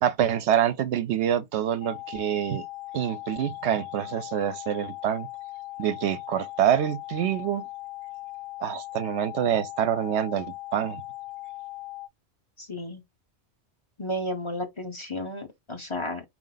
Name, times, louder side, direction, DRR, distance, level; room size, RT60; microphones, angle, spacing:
voice 1, 0.0-2.6 2.9-5.3 5.8-7.7 8.6-11.0, right 10 dB, 85° right, 0.9 m, -26 dB
sound 1, 1.8-12.1, left 18 dB, 70° left, 1.0 m, -39 dB
voice 2, 12.6-13.0 14.0-16.2, left 1 dB, 30° left, 0.9 m, -33 dB
4.9 x 2.1 x 3.7 m
omnidirectional pair, 1.1 m